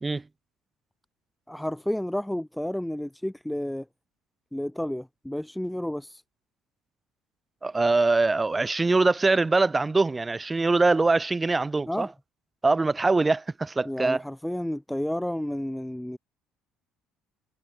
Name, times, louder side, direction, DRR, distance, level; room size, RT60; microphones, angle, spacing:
voice 1, 1.5-3.9 4.5-6.2 11.9-12.1 13.8-16.2, left 1 dB, 5° left, 0.8 m, -31 dB
voice 2, 7.6-12.1 12.6-14.2, right 3 dB, 20° right, 2.1 m, -23 dB
supercardioid pair, 95°, 0 cm